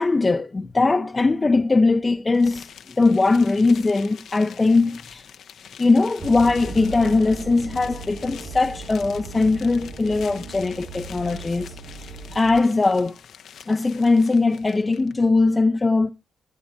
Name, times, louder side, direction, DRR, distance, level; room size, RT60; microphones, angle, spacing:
voice 1, 0.0-2.7 3.0-5.3 5.8-11.7 12.3-13.2 13.7-16.1, left 3 dB, 30° left, 0.6 m, -20 dB
sound 1, 2.3-15.1, left 8 dB, 65° left, 0.7 m, -45 dB
sound 2, 6.2-12.6, right 4 dB, 55° right, 3.6 m, -37 dB
16.5 x 8.3 x 2.3 m
supercardioid pair, 50°, 0 cm